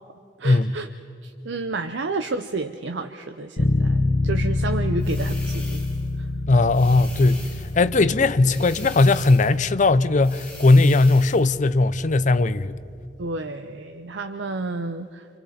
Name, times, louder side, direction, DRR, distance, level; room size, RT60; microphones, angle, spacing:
voice 1, 0.4-0.9 1.2-5.8 13.2-15.3, right 3 dB, 75° right, 0.7 m, -30 dB
Bass guitar, 3.6-13.3, left 2 dB, 75° left, 1.2 m, -28 dB
sound 1, 5.0-6.1 6.7-7.8 8.4-9.6 10.2-11.5, left 2 dB, 10° left, 5.5 m, -43 dB
voice 2, 6.5-7.5 7.8-12.7, left 3 dB, 45° left, 0.6 m, -18 dB
29.5 x 26.5 x 4.3 m
head